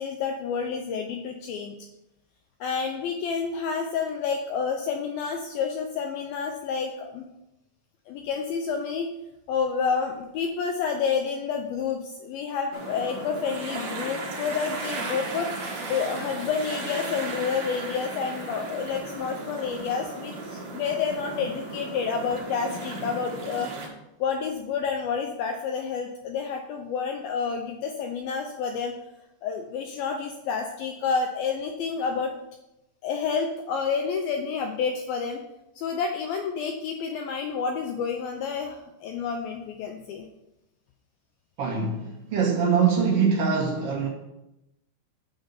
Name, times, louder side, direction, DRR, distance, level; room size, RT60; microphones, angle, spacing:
voice 1, 0.0-1.8 2.6-7.3 8.1-9.1 9.5-15.5 15.9-23.7 24.2-28.9 29.4-32.3 33.0-35.4 35.8-40.3, left 6 dB, 85° left, 4 dB, 2.1 m, -29 dB
sound 1, 12.7-23.9, right 3 dB, 55° right, 2.1 m, -36 dB
voice 2, 41.6-44.1, right 6 dB, 90° right, -2 dB, 1.2 m, -23 dB
9.2 x 3.9 x 7.0 m, 0.90 s
omnidirectional pair, 4.9 m